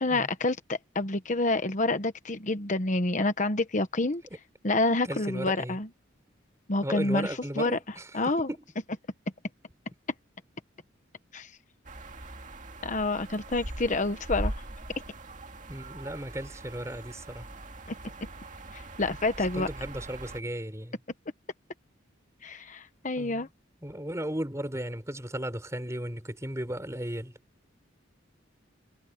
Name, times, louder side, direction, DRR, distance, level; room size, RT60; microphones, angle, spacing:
voice 1, 0.0-4.2 4.6-5.9 6.7-7.3 7.6-7.8 8.1-8.5 11.3-11.5 12.8-14.5 17.9-18.0 18.7-19.7 22.4-23.5, left 2 dB, 40° left, 1.1 m, -28 dB
voice 2, 5.0-5.8 6.8-8.1 8.5-8.6 15.7-17.5 19.4-21.0 23.2-23.5 23.8-27.4, right 1 dB, 15° right, 3.8 m, -35 dB
sound 1, 11.8-20.4, right 1 dB, 40° right, 2.1 m, -40 dB
head